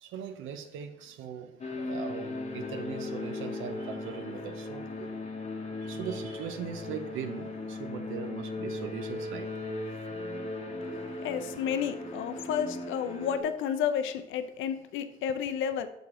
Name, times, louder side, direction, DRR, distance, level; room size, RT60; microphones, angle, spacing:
voice 1, 0.0-5.1 5.8-9.5 10.2-10.3, right 8 dB, 85° right, 7 dB, 0.5 m, -40 dB
sound 1, 1.6-13.4, left 2 dB, 35° left, 0.9 m, -37 dB
voice 2, 11.2-15.9, left 8 dB, 80° left, 10 dB, 0.4 m, -31 dB
6.1 x 4.8 x 3.6 m, 0.87 s
cardioid pair, 90°, 20 cm